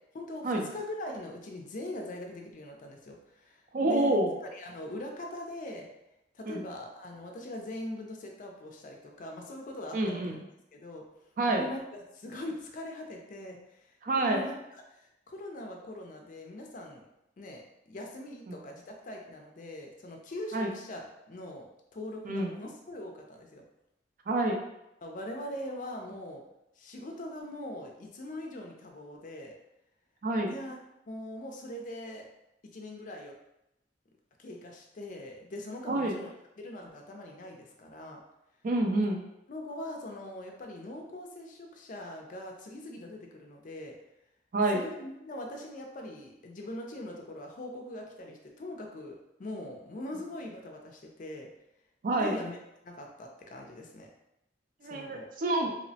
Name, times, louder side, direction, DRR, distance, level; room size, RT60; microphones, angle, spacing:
voice 1, 0.1-4.2 4.5-5.9 6.3-10.4 10.7-11.1 11.5-17.0 17.4-21.0 21.3-23.6 25.0-26.4 26.8-29.5 30.4-30.8 31.1-32.3 32.7-33.3 34.4-36.3 36.6-38.2 39.5-43.9 44.7-51.5 52.2-52.6 52.8-54.1 54.8-55.3, left 1 dB, 45° left, 1 dB, 0.4 m, -42 dB
voice 2, 3.7-4.3 6.5-6.7 9.9-10.5 11.4-11.7 14.0-14.4 18.5-18.6 20.5-20.7 22.3-22.5 24.3-24.6 30.2-30.5 35.9-36.2 38.6-39.2 44.5-44.8 52.0-52.3 54.8-55.7, right 2 dB, 50° right, 2 dB, 0.4 m, -28 dB
2.8 x 2.0 x 2.7 m, 0.85 s
head